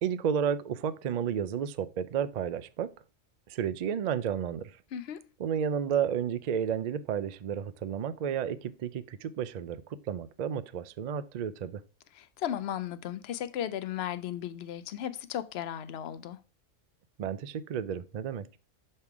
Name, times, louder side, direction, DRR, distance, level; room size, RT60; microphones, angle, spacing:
voice 1, 0.0-2.9 3.5-4.7 5.4-9.8 10.1-11.8 17.2-18.5, right 8 dB, 75° right, 0.4 m, -32 dB
voice 2, 4.9-5.2 12.1-16.4, left 10 dB, 65° left, 0.7 m, -35 dB
6.6 x 3.6 x 4.6 m
omnidirectional pair, 1.3 m